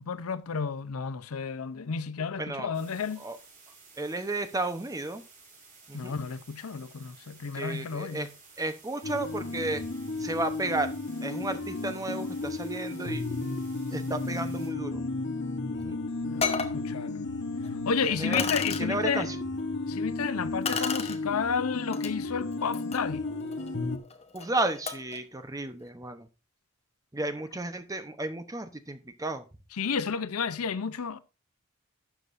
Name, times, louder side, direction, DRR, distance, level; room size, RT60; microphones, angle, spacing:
voice 1, 0.1-3.2 5.9-8.3 16.2-17.2 17.8-19.3 19.9-23.2 29.7-31.2, left 6 dB, 85° left, 0.6 m, -32 dB
voice 2, 2.4-2.7 3.2-3.4 4.0-5.2 5.9-6.2 7.5-8.3 8.6-9.8 10.2-13.2 13.9-15.0 15.7-16.0 18.0-18.4 18.8-19.4 24.3-26.3 27.1-29.4, right 2 dB, 15° right, 0.8 m, -33 dB
sound 1, 2.7-14.7, right 4 dB, 40° right, 3.4 m, -55 dB
sound 2, 9.0-24.0, left 2 dB, 55° left, 1.0 m, -33 dB
sound 3, 15.8-15.9 16.4-16.8 17.6-17.7 18.3-18.8 20.6-21.2 21.9-22.1 22.6-25.2, left 5 dB, 30° left, 1.0 m, -33 dB
12.5 x 8.2 x 2.6 m
head